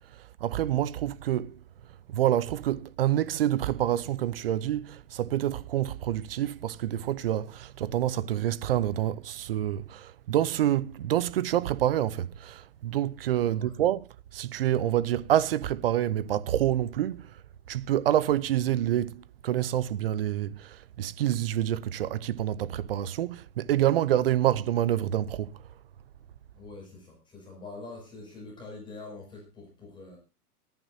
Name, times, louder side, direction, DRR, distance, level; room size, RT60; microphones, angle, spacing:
voice 1, 0.4-1.6 2.1-14.1 14.3-17.3 17.7-25.6, right 12 dB, 40° right, 0.6 m, -27 dB
voice 2, 26.5-30.2, left 3 dB, 10° left, 6.3 m, -45 dB
24.5 x 10.5 x 2.8 m
hypercardioid pair, 155°, 46 cm